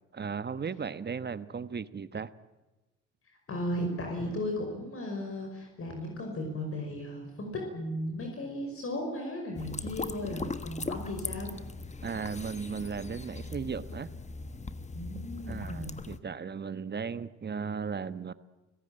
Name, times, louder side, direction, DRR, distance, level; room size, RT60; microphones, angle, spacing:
voice 1, 0.1-2.3 12.0-14.1 15.5-18.3, right 6 dB, 35° right, 14 dB, 1.2 m, -36 dB
voice 2, 3.3-11.5 14.9-16.0, left 1 dB, 45° left, 2 dB, 5.4 m, -36 dB
sound 1, 9.5-16.2, left 3 dB, 25° left, 1.3 m, -39 dB
29.5 x 17.0 x 8.9 m, 1.1 s
cardioid pair, 90°, 30 cm